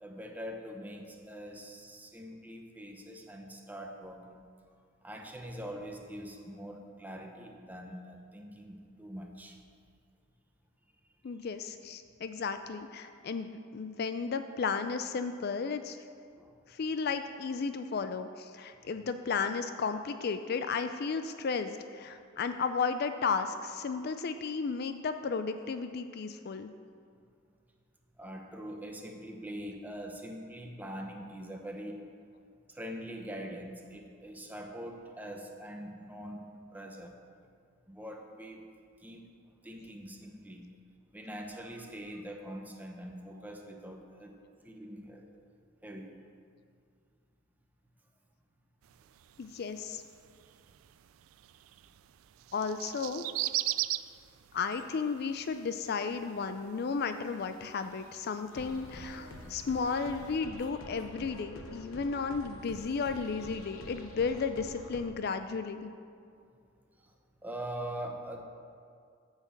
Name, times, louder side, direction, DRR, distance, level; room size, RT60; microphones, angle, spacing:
voice 1, 0.0-4.4 5.0-9.6 11.4-11.5 16.4-16.6 18.9-19.0 28.2-32.1 32.7-37.5 37.9-39.2 39.6-40.7 41.1-45.3 45.8-46.1 67.0-67.1 67.4-68.4, equal, 10° right, 2 dB, 0.9 m, -43 dB
voice 2, 11.2-16.0 16.7-26.7 49.4-50.0 52.5-53.2 54.5-65.9, left 5 dB, 50° left, 9 dB, 0.4 m, -34 dB
sound 1, 48.8-60.4, right 16 dB, 85° right, 0.3 m, -41 dB
sound 2, 58.5-65.0, left 2 dB, 85° left, 1.0 m, -47 dB
9.0 x 6.5 x 7.3 m, 2.3 s
head